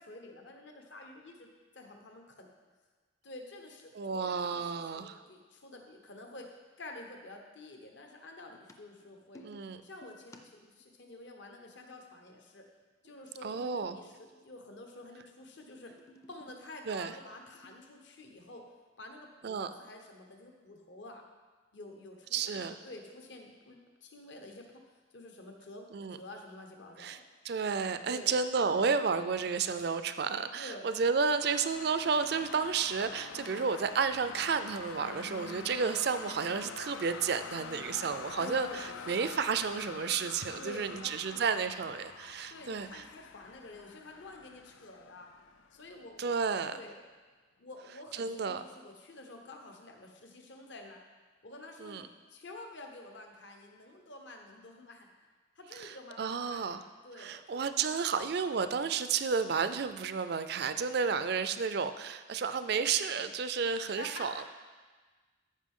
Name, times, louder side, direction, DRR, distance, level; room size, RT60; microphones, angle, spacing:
voice 1, 0.0-2.5 3.2-9.5 9.8-12.6 13.0-15.9 16.3-18.7 19.0-21.2 21.7-24.8 25.1-27.2 28.0-28.4 30.5-30.9 33.3-33.6 35.0-35.3 38.4-39.2 40.5-41.5 42.5-45.3 45.7-46.4 46.7-47.0 47.6-51.0 51.4-55.3 55.5-56.8 57.0-58.0 64.0-64.4, left 2 dB, 65° left, 3 dB, 1.1 m, -49 dB
voice 2, 3.9-5.2 9.4-9.8 13.4-14.0 16.9-17.1 19.4-19.7 22.3-22.7 25.9-26.2 27.0-27.2 27.4-43.0 46.2-46.8 48.2-48.6 51.8-52.0 55.8-56.8 57.2-64.5, right 5 dB, 55° right, 11 dB, 0.4 m, -32 dB
sound 1, 8.5-10.8 13.1-14.9 15.4-16.7 17.2-17.7, left 1 dB, 15° left, 0.5 m, -58 dB
sound 2, 31.4-46.2, left 6 dB, 80° left, 0.4 m, -46 dB
13.5 x 5.4 x 3.7 m, 1.4 s
head